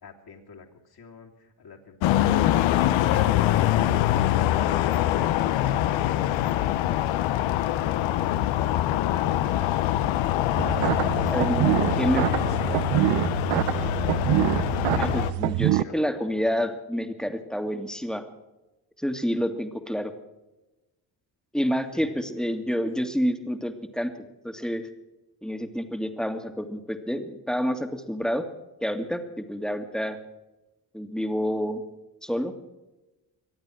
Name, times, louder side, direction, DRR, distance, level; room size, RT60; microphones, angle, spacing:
voice 1, 0.0-4.4 7.9-9.8 11.7-13.9 15.3-15.5 15.8-16.7 21.9-22.2, left 5 dB, 50° left, 1 dB, 3.0 m, -46 dB
sound 1, 2.0-15.3, left 13 dB, 80° left, 0.9 m, -24 dB
sound 2, 10.6-15.8, right 17 dB, 70° right, 0.6 m, -25 dB
voice 2, 11.3-12.2 14.9-18.3 19.0-20.1 21.5-24.9 25.4-28.5 28.8-30.2 30.9-31.8 32.2-32.7, equal, ahead, 6 dB, 1.9 m, -28 dB
24.0 x 8.8 x 6.3 m, 1.0 s
supercardioid pair, 65°, 46 cm